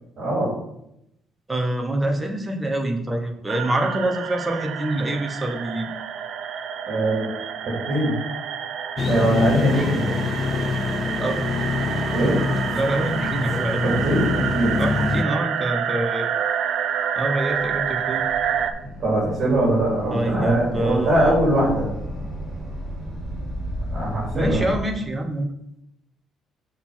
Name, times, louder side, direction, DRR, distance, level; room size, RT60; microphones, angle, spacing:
voice 1, 0.2-0.5 6.9-7.4 7.8-8.2 9.1-10.1 12.1-12.4 13.8-14.8 15.2-15.3 19.0-21.9 23.9-24.6, right 1 dB, 35° right, -6 dB, 3.0 m, -21 dB
voice 2, 1.5-5.9 11.2-11.5 12.7-14.0 14.8-16.3 17.2-18.2 20.1-21.4 24.3-25.5, right 1 dB, 10° right, 3 dB, 0.9 m, -26 dB
sound 1, 3.5-18.7, right 8 dB, 60° right, 0.6 m, -28 dB
sound 2, 9.0-15.2, left 4 dB, 30° left, 0.4 m, -25 dB
sound 3, 17.5-24.8, equal, 5° left, 2.4 m, -33 dB
6.6 x 4.5 x 5.7 m, 0.82 s
cardioid pair, 165°, 0 cm